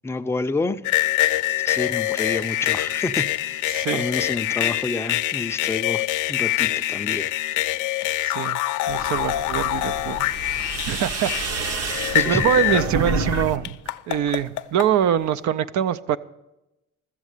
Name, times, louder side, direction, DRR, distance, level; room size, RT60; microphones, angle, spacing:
voice 1, 0.0-0.8 1.6-3.6 3.9-6.0 6.3-7.3 12.2-12.6, left 3 dB, 10° left, 0.4 m, -28 dB
sound 1, 0.8-12.9 13.6-14.9, left 15 dB, 90° left, 0.5 m, -25 dB
voice 2, 3.7-4.1 8.3-8.6 8.9-10.3 10.6-13.8 14.1-16.2, right 9 dB, 70° right, 0.5 m, -24 dB
sound 2, 8.9-13.6 13.9-14.5, right 3 dB, 55° right, 1.1 m, -29 dB
14.0 x 7.3 x 6.6 m
cardioid pair, 90°, 30 cm